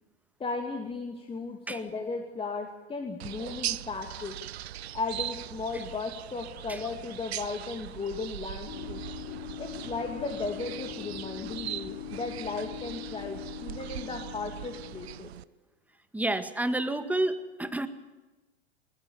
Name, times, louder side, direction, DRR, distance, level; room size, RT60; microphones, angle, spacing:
voice 1, 0.4-4.4 4.9-9.0 9.6-15.3, left 4 dB, 15° left, 3 dB, 2.6 m, -36 dB
sound 1, 3.2-15.4, right 13 dB, 75° right, 0.9 m, -40 dB
sound 2, 8.7-15.2, left 14 dB, 45° left, 3.3 m, -42 dB
voice 2, 16.1-17.9, right 1 dB, 5° right, 9 dB, 1.9 m, -29 dB
21.5 x 21.5 x 7.2 m, 1.1 s
hypercardioid pair, 110°, 32 cm